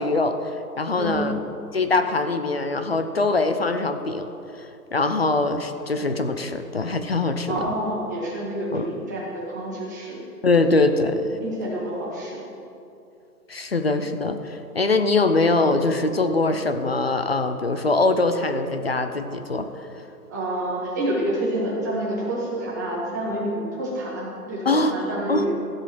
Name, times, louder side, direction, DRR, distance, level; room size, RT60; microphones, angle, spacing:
voice 1, 0.0-1.4 1.7-4.3 4.5-4.7 4.9-7.6 8.7-8.9 10.4-11.4 13.5-19.9 24.7-25.0 25.3-25.5, left 3 dB, 40° left, 8 dB, 0.5 m, -23 dB
voice 2, 7.5-10.3 11.4-12.4 20.3-25.5, right 1 dB, 10° right, -6 dB, 1.1 m, -28 dB
15.0 x 5.4 x 6.0 m, 2.6 s
hypercardioid pair, 175°, 47 cm